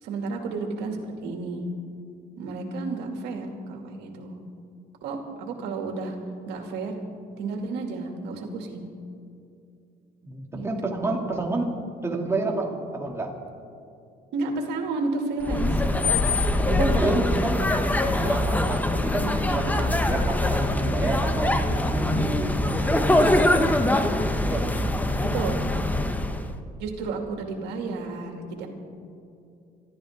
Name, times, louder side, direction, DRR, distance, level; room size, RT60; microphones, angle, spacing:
voice 1, 0.0-1.7 2.4-4.4 5.0-6.2 6.5-6.9 7.4-8.9 10.5-10.7 14.3-15.8 16.9-17.4 19.8-20.0 25.3-25.6 26.8-28.7, right 3 dB, 85° right, 2 dB, 2.6 m, -32 dB
voice 2, 10.2-11.8 12.0-13.3 16.6-17.7 18.1-23.8 24.4-24.7, right 2 dB, 15° right, 0 dB, 2.6 m, -29 dB
sound 1, 15.4-26.5, left 1 dB, 10° left, 1.0 m, -23 dB
26.5 x 13.0 x 3.7 m, 2.5 s
cardioid pair, 110°, 17 cm